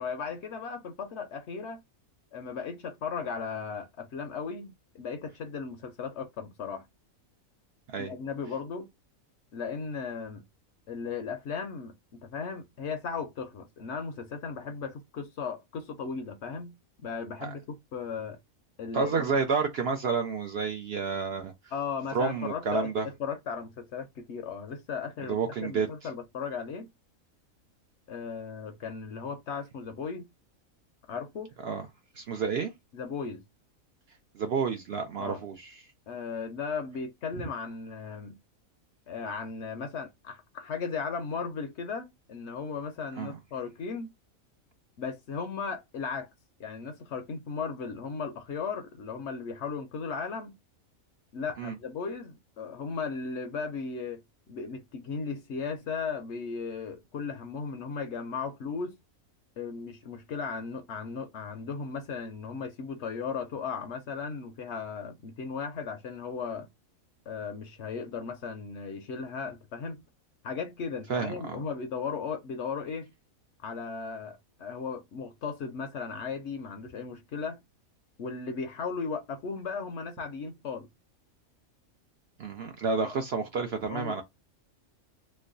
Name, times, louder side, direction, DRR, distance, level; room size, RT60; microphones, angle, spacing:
voice 1, 0.0-1.8 2.3-6.8 8.0-8.9 9.5-10.4 10.9-16.7 17.0-18.4 18.8-19.3 21.7-26.9 28.1-30.3 31.1-31.5 32.9-33.4 35.2-35.4 36.1-38.4 39.1-44.1 45.0-46.3 46.6-50.5 51.3-54.2 54.5-58.9 59.6-66.7 67.3-70.0 70.4-73.1 73.6-77.6 78.2-80.9 83.1-83.2 83.9-84.2, left 5 dB, 65° left, 0.8 m, -36 dB
voice 2, 18.9-21.5 22.1-23.1 25.3-25.9 31.6-31.9 32.2-32.7 34.3-35.8 43.2-43.3 51.6-51.8 71.1-71.6 82.4-84.2, right 5 dB, 60° right, 0.7 m, -30 dB
3.1 x 2.2 x 3.7 m
omnidirectional pair, 1.5 m